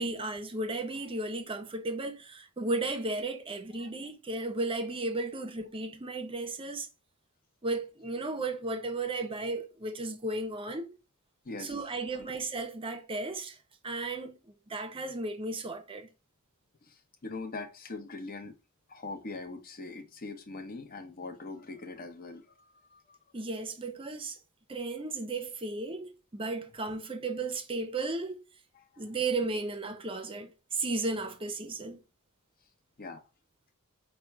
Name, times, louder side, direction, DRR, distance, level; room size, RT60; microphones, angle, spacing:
voice 1, 0.0-6.9 7.6-11.0 11.6-13.6 13.8-14.4 14.7-16.1 23.3-24.4 24.7-28.4 29.0-32.0, right 2 dB, 25° right, 0.6 m, -34 dB
voice 2, 16.8-18.5 18.9-23.2 28.7-29.1 33.0-33.2, left 3 dB, 40° left, 0.8 m, -42 dB
5.1 x 2.2 x 4.4 m
head